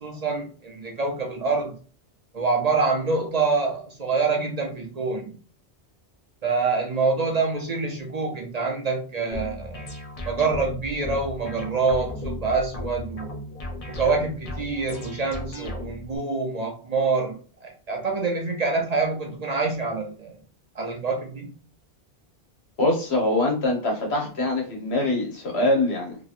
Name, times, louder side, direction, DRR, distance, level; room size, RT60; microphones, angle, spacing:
voice 1, 0.0-1.7 2.3-5.3 6.4-9.9 10.3-13.3 13.9-20.4 20.8-21.6, right 4 dB, 45° right, 2 dB, 0.6 m, -26 dB
sound 1, 9.3-16.2, left 1 dB, 40° left, 0.6 m, -36 dB
voice 2, 22.8-26.2, left 2 dB, 85° left, 0 dB, 1.4 m, -23 dB
2.9 x 2.9 x 2.4 m, 0.39 s
omnidirectional pair, 1.1 m